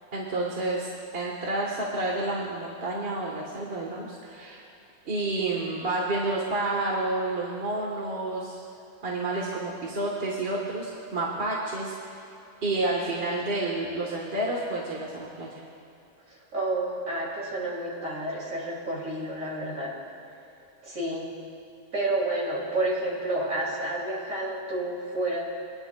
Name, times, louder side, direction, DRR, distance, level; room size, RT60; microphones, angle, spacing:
voice 1, 0.1-4.6 5.0-8.6 9.0-12.2 12.6-15.5, right 2 dB, 40° right, -3 dB, 1.5 m, -30 dB
voice 2, 16.5-19.9 20.8-21.3 21.9-25.4, right 1 dB, 60° right, -4 dB, 3.1 m, -30 dB
23.0 x 10.5 x 2.3 m, 2.8 s
omnidirectional pair, 1.6 m